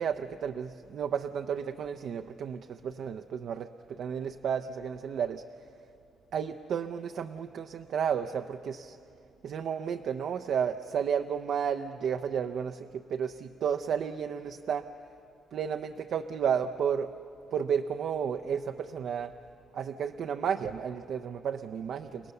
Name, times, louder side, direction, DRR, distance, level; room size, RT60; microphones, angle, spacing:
voice 1, 0.0-5.4 6.3-9.0 9.4-14.8 15.5-17.1 17.5-19.3 19.7-22.3, right 7 dB, 65° right, 6 dB, 0.6 m, -32 dB
30.0 x 17.5 x 6.7 m, 2.7 s
cardioid pair, 90°, 0 cm